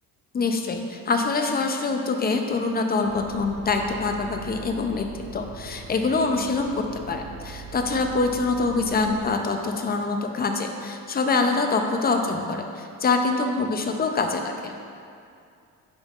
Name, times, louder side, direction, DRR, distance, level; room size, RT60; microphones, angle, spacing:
voice 1, 0.3-5.1 5.3-14.7, left 3 dB, 25° left, 4 dB, 0.5 m, -25 dB
sound 1, 3.0-9.3, right 5 dB, 75° right, 0.9 m, -41 dB
10.5 x 5.3 x 2.4 m, 2.4 s
cardioid pair, 130°, 37 cm